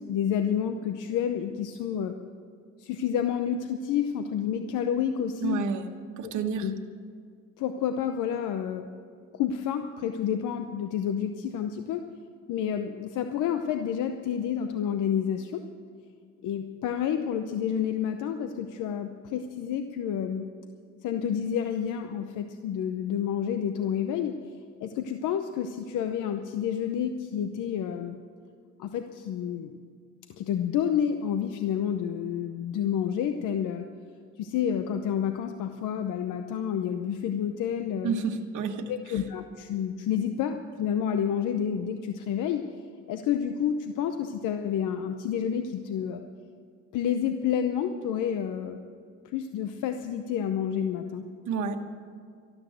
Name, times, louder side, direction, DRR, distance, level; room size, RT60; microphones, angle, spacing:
voice 1, 0.0-2.1 2.8-5.6 6.2-6.3 6.6-6.7 7.6-8.9 9.3-12.0 12.5-15.6 16.4-20.5 21.0-24.4 24.8-28.2 28.8-29.8 30.4-33.8 34.4-38.1 38.9-42.6 43.1-46.2 46.9-48.8 49.2-51.3, left 8 dB, 85° left, 7 dB, 0.8 m, -29 dB
voice 2, 5.4-5.8 6.2-6.7 38.0-39.2 51.5-51.8, right 5 dB, 75° right, 4 dB, 1.4 m, -30 dB
13.0 x 12.5 x 7.9 m, 2.2 s
cardioid pair, 90°, 30 cm